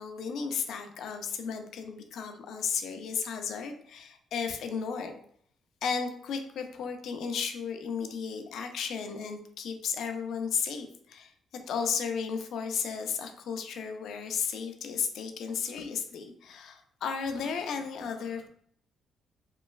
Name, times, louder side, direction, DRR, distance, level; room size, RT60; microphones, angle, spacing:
voice 1, 0.0-5.2 5.8-11.3 11.7-18.5, left 6 dB, 75° left, 6 dB, 0.3 m, -34 dB
3.0 x 2.2 x 2.3 m, 0.63 s
cardioid pair, 90°, 0 cm